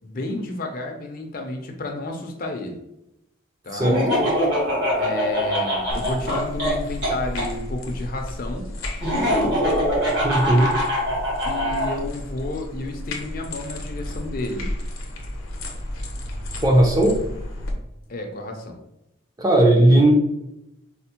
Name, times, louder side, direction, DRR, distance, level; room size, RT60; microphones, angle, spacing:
voice 1, 0.0-2.8 3.6-3.8 5.0-8.7 11.4-14.7 18.1-18.8, left 2 dB, 45° left, 3 dB, 0.4 m, -31 dB
voice 2, 3.7-4.3 10.2-10.7 16.6-17.2 19.4-20.1, right 1 dB, 20° right, 0 dB, 0.5 m, -17 dB
Laughter, 3.8-7.5 9.0-11.9, equal, 60° right, 1.2 m, -23 dB
sound 1, 5.9-17.7, left 1 dB, 85° left, 0.6 m, -33 dB
4.2 x 2.0 x 2.8 m, 0.84 s
head